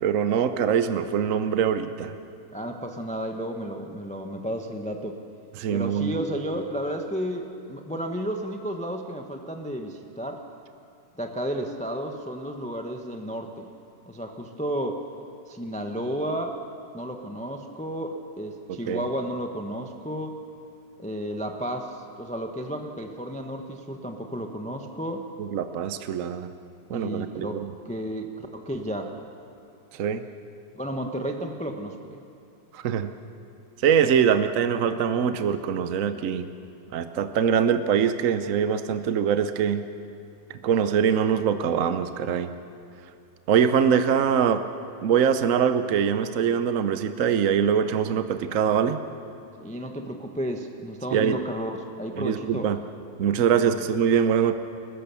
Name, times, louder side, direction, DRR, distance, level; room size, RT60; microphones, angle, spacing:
voice 1, 0.0-2.1 5.6-6.1 18.9-19.0 25.4-26.5 26.9-27.7 29.9-30.2 32.7-33.1 33.8-36.5 36.9-39.8 40.6-42.5 43.5-44.6 45.0-49.0 51.1-51.4 52.2-52.8 53.2-54.5, right 7 dB, 60° right, 9 dB, 0.9 m, -23 dB
voice 2, 2.5-5.2 5.7-10.4 11.1-13.7 14.1-15.0 15.5-16.6 16.9-20.4 21.0-25.3 26.9-29.2 30.7-32.2 49.6-52.7, equal, 5° left, 3 dB, 0.7 m, -32 dB
30.0 x 14.5 x 7.0 m, 2.6 s
omnidirectional pair, 2.0 m